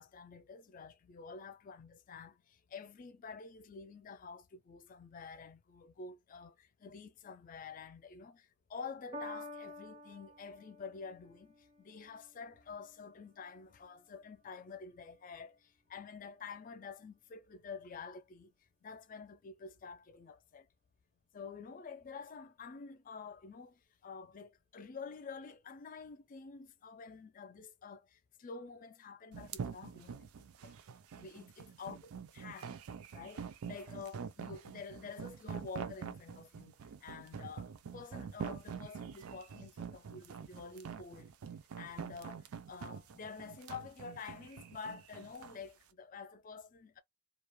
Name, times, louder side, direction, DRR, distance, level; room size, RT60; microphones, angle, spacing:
voice 1, 0.0-18.5 18.8-20.7 21.3-30.8 31.2-32.0 32.3-32.8 33.1-41.3 41.7-47.0, left 5 dB, 40° left, 0.3 m, -49 dB
Piano, 9.1-15.7 16.5-16.6, left 1 dB, 30° right, 0.5 m, -52 dB
sound 1, 29.3-45.6, right 6 dB, 85° right, 0.4 m, -45 dB
2.4 x 2.1 x 2.9 m
head